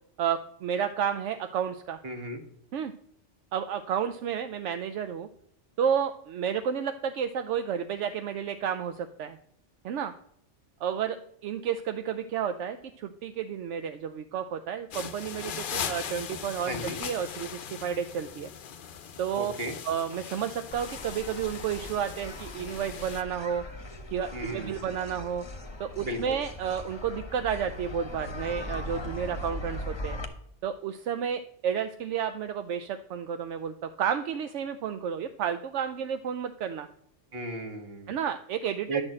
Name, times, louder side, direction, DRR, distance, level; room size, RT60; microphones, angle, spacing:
voice 1, 0.2-2.0 2.7-2.9 3.5-5.3 5.8-9.4 9.8-10.1 10.8-11.2 11.4-18.5 19.2-19.5 19.8-23.6 24.1-25.4 25.8-30.2 30.6-36.9 38.1-39.0, right 8 dB, 80° right, 9 dB, 0.9 m, -31 dB
voice 2, 2.0-2.4 16.6-17.0 19.4-19.8 24.3-24.9 26.0-26.4 37.3-38.2 38.9-39.0, right 1 dB, 55° right, 4 dB, 1.6 m, -35 dB
sound 1, 14.9-23.2, left 8 dB, 55° left, 0.7 m, -39 dB
sound 2, 20.7-30.2, left 1 dB, 25° left, 0.9 m, -40 dB
11.0 x 4.4 x 7.5 m, 0.71 s
omnidirectional pair, 1.2 m